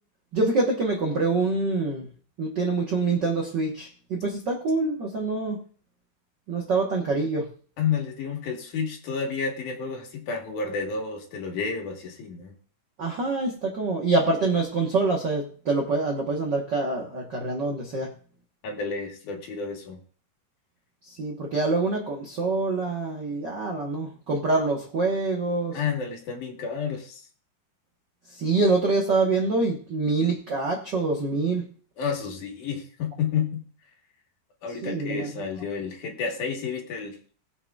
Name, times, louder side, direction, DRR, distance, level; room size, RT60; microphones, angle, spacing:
voice 1, 0.3-2.1 2.4-5.6 6.5-7.5 13.0-18.1 21.2-25.8 28.4-31.6 34.8-35.3, right 3 dB, 60° right, -1 dB, 1.1 m, -25 dB
voice 2, 7.8-12.6 18.6-20.0 25.7-27.2 32.0-33.6 34.6-37.2, left 6 dB, 70° left, 1 dB, 2.9 m, -30 dB
20.0 x 6.8 x 2.4 m, 0.43 s
omnidirectional pair, 3.8 m